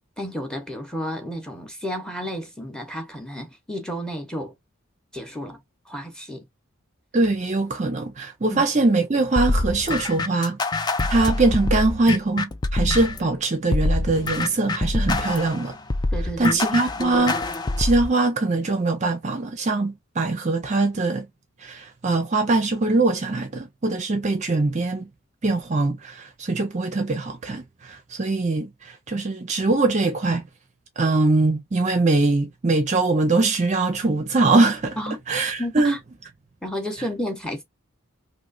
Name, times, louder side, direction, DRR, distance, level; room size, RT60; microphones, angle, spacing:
voice 1, 0.2-4.5 5.1-5.6 5.9-6.4 8.5-8.7 16.1-16.9 35.0-35.2 35.6-36.0 36.6-37.6, equal, 5° left, 0.8 m, -32 dB
voice 2, 7.1-10.6 11.1-15.8 16.4-17.4 17.8-21.3 21.6-25.1 25.4-30.4 31.0-35.0 35.3-36.0, right 3 dB, 35° right, 0.5 m, -22 dB
sound 1, 9.4-13.3 13.7-18.1, left 2 dB, 20° left, 0.3 m, -25 dB
3.1 x 2.8 x 2.5 m
head